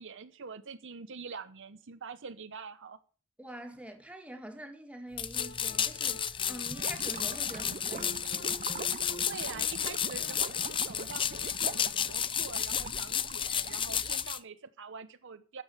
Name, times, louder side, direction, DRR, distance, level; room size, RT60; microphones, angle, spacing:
voice 1, 0.0-3.0 9.3-15.6, right 5 dB, 60° right, 0.9 m, -45 dB
voice 2, 3.4-8.3, right 1 dB, 5° right, 2.0 m, -45 dB
sound 1, 5.2-14.4, left 8 dB, 25° left, 0.5 m, -32 dB
sound 2, 5.4-12.2, left 2 dB, 50° left, 1.6 m, -49 dB
Gurgling / Liquid, 6.6-14.3, right 5 dB, 35° right, 0.5 m, -44 dB
12.5 x 7.8 x 7.1 m
head